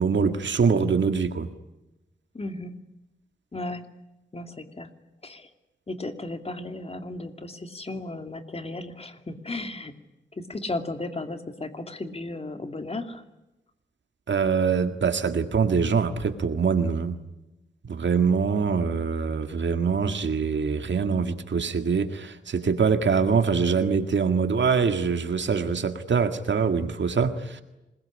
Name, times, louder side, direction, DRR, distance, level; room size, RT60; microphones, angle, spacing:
voice 1, 0.0-1.5 14.3-17.2 17.8-27.6, right 5 dB, 75° right, 8 dB, 1.9 m, -24 dB
voice 2, 2.3-2.8 3.5-3.9 4.3-4.9 5.2-5.5 5.9-9.9 10.3-13.2, left 2 dB, 30° left, 7 dB, 2.6 m, -35 dB
26.5 x 21.0 x 10.0 m, 0.97 s
wide cardioid pair, 120°, 19 cm